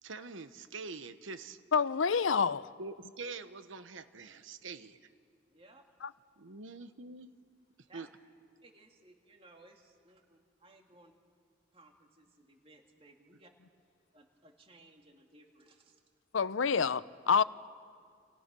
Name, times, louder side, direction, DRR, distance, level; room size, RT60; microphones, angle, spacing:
voice 1, 0.0-1.6 2.8-5.0 6.4-7.3 7.9-8.1, right 4 dB, 90° right, 1.2 m, -45 dB
voice 2, 1.7-2.7 6.0-6.1 16.3-17.4, left 6 dB, 85° left, 0.6 m, -28 dB
voice 3, 5.5-5.8 7.9-8.1 8.6-11.1 11.7-13.5 14.1-15.9, right 2 dB, 30° right, 2.2 m, -60 dB
29.0 x 28.5 x 6.2 m
head